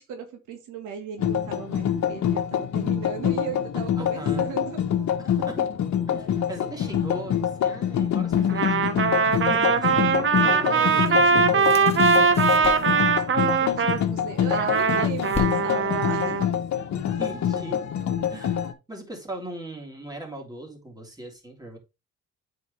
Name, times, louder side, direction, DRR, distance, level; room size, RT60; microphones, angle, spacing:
voice 1, 0.0-4.8 9.9-13.0 13.6-16.4, right 6 dB, 90° right, 1.5 m, -37 dB
sound 1, 1.2-18.7, left 9 dB, 65° left, 1.2 m, -25 dB
voice 2, 4.0-4.4 5.2-5.7 6.1-10.7 12.8-13.3 16.9-17.9 18.3-21.8, right 1 dB, 15° right, 3.1 m, -39 dB
Trumpet, 8.5-14.0 14.5-16.5, right 5 dB, 40° right, 1.0 m, -21 dB
sound 2, 9.3-9.5 10.5-11.3 11.6-13.1 14.3-15.9, left 4 dB, 20° left, 2.0 m, -37 dB
8.3 x 4.9 x 3.3 m
cardioid pair, 90°, 30 cm